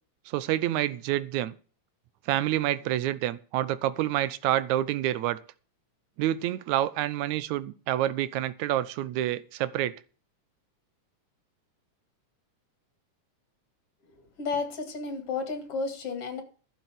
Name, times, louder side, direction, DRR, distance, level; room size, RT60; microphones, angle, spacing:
voice 1, 0.3-1.5 2.3-5.4 6.2-10.0, right 13 dB, 75° right, 2.2 m, -28 dB
voice 2, 14.4-16.4, left 4 dB, 50° left, 3.3 m, -32 dB
11.5 x 7.5 x 7.5 m
omnidirectional pair, 3.5 m